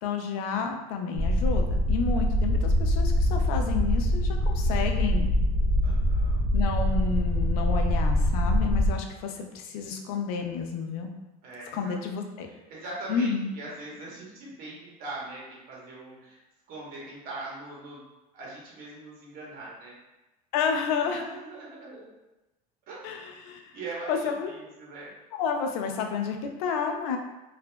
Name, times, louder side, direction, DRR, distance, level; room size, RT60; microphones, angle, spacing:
voice 1, 0.0-5.3 6.5-11.1 11.7-12.5 13.1-13.5 20.5-21.2 23.0-23.7 24.1-24.5 25.3-27.2, left 6 dB, 80° left, 4 dB, 0.4 m, -30 dB
sound 1, 1.1-8.9, left 1 dB, 75° right, 0.9 m, -24 dB
voice 2, 5.8-6.4 11.4-11.9 12.7-16.4 16.7-18.0 18.3-19.9 21.0-22.1 22.9-23.3 23.7-25.1, right 2 dB, 55° right, -5 dB, 1.0 m, -41 dB
2.7 x 2.4 x 2.2 m, 1.0 s
supercardioid pair, 115°, 19 cm